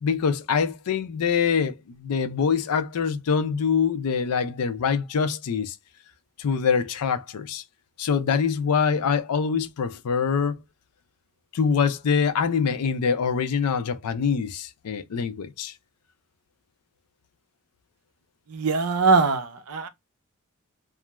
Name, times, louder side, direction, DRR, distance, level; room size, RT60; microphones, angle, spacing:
voice 1, 0.0-5.8 6.4-7.6 8.0-10.6 11.5-15.7, left 6 dB, 80° left, 0.4 m, -24 dB
voice 2, 18.5-19.9, right 4 dB, 70° right, 0.5 m, -22 dB
2.4 x 2.2 x 2.9 m
head